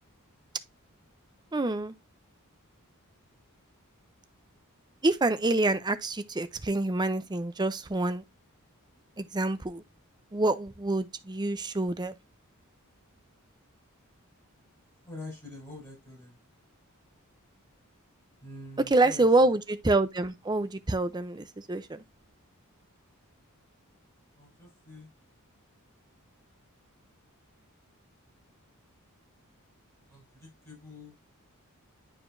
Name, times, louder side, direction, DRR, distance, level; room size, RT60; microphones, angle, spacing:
voice 1, 1.5-1.9 5.0-8.2 9.2-9.8 10.3-12.1 18.8-22.0, right 2 dB, 20° right, 0.6 m, -27 dB
voice 2, 15.0-16.4 18.4-19.5 24.4-25.1 30.1-31.2, left 2 dB, 15° left, 5.4 m, -46 dB
9.0 x 4.9 x 2.6 m
head